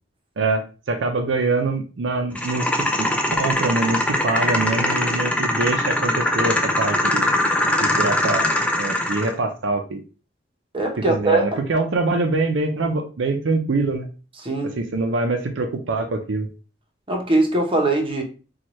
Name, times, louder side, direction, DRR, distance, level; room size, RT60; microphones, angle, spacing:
voice 1, 0.4-3.1 3.4-7.3 7.8-8.4 8.8-10.0 11.1-14.1 14.8-16.5, right 3 dB, 70° right, 0.5 m, -24 dB
sound 1, 2.4-9.3, left 1 dB, 5° left, 0.4 m, -22 dB
voice 2, 10.7-11.6 14.4-14.8 17.1-18.2, right 2 dB, 30° right, 0.8 m, -21 dB
4.4 x 2.3 x 3.0 m
head